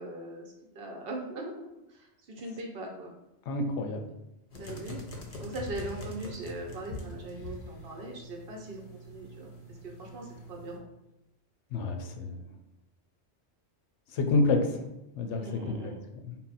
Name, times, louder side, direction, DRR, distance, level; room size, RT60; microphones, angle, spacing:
voice 1, 0.0-3.1 4.6-5.0 5.4-9.5 9.8-10.9 15.4-16.0, right 2 dB, 60° right, 1 dB, 0.9 m, -40 dB
voice 2, 3.5-4.0 11.7-12.4 14.1-14.8 15.2-16.4, left 3 dB, 80° left, 4 dB, 0.9 m, -29 dB
sound 1, 4.5-10.8, left 1 dB, 45° left, 0.5 m, -43 dB
3.9 x 2.1 x 4.0 m, 0.90 s
omnidirectional pair, 1.2 m